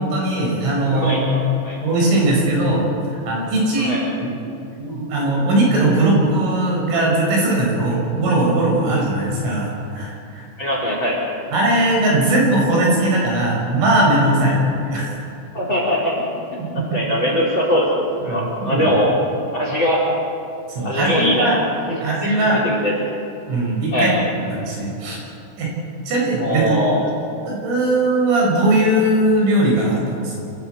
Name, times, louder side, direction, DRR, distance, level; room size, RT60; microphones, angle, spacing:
voice 1, 0.0-1.2 1.8-2.9 3.3-4.3 4.8-10.4 11.5-15.1 16.6-16.8 18.2-18.9 20.7-21.6 22.0-22.6 23.5-25.2 25.6-25.7 26.1-26.8 27.5-30.4, right 1 dB, 80° right, -3 dB, 8.4 m, -19 dB
voice 2, 0.9-1.8 3.8-4.0 10.6-11.2 15.5-16.2 16.5-16.6 16.9-19.1 19.5-20.0 20.8-21.6 22.2-22.9 23.9-24.1 26.4-27.0, equal, 25° left, -3 dB, 4.2 m, -21 dB
26.5 x 15.0 x 8.1 m, 2.7 s
omnidirectional pair, 5.7 m